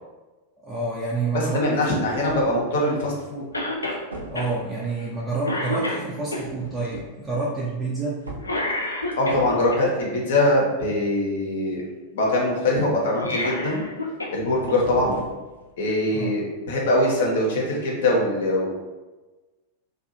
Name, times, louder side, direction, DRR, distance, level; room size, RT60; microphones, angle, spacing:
voice 1, 0.6-1.9 4.3-8.2 16.1-16.3, right 3 dB, 15° right, -6 dB, 0.5 m, -28 dB
voice 2, 1.3-3.4 9.2-11.8 12.1-13.9 14.3-15.2 15.8-18.8, left 1 dB, 60° left, -2 dB, 0.7 m, -22 dB
sound 1, 1.8-2.6 3.5-3.8 4.1-4.7 6.3-7.2 7.6-7.8 8.2-9.8 14.2-15.8 17.2-17.3, right 2 dB, 75° right, 0.5 m, -40 dB
Cough, 3.5-4.0 4.4-4.5 5.0-5.2 5.4-6.4 8.4-9.8 13.1-14.4 14.7-14.8 15.9-16.0, left 1 dB, 80° left, 0.4 m, -28 dB
2.6 x 2.3 x 2.6 m, 1.2 s
figure-of-eight pair, 90°, 0 cm